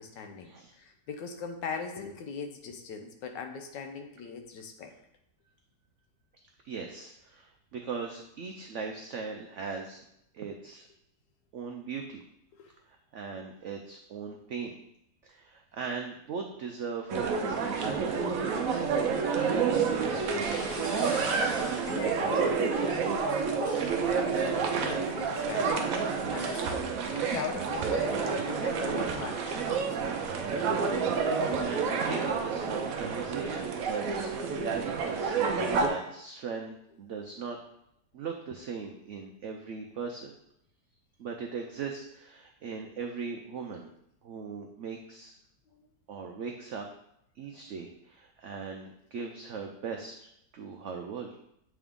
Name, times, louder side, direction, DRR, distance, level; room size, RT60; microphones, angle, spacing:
voice 1, 0.0-5.0 12.5-12.7 21.8-25.9 26.3-30.2 45.7-45.8, left 5 dB, 85° left, 6 dB, 1.4 m, -40 dB
voice 2, 6.6-10.0 10.3-10.9 11.5-12.2 12.9-14.8 15.2-18.1 18.7-20.7 31.6-37.6 38.1-40.4 41.2-43.9 44.2-45.3 46.1-46.9 47.4-50.3 50.5-51.4, right 5 dB, 90° right, 3 dB, 0.6 m, -39 dB
sound 1, 17.1-35.9, right 5 dB, 65° right, 0.9 m, -29 dB
sound 2, 18.3-18.5 20.4-22.1 22.8-25.0 25.4-27.4, left 1 dB, 65° left, 1.9 m, -46 dB
7.6 x 3.6 x 3.6 m, 0.76 s
omnidirectional pair, 1.9 m